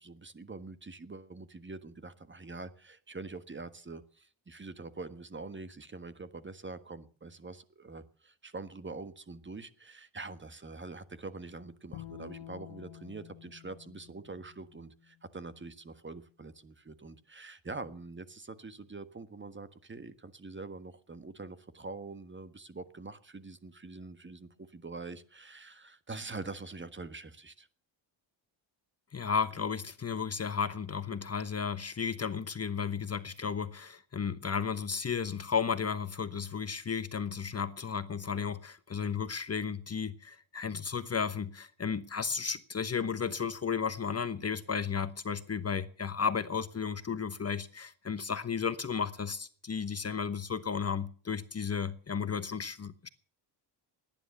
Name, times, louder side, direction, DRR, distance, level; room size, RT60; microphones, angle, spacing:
voice 1, 0.0-27.7, right 3 dB, 25° right, 1.5 m, -45 dB
Bowed string instrument, 11.9-15.2, left 12 dB, 80° left, 1.3 m, -49 dB
voice 2, 29.1-53.1, left 6 dB, 30° left, 1.1 m, -34 dB
18.0 x 10.5 x 6.8 m
cardioid pair, 75°, 47 cm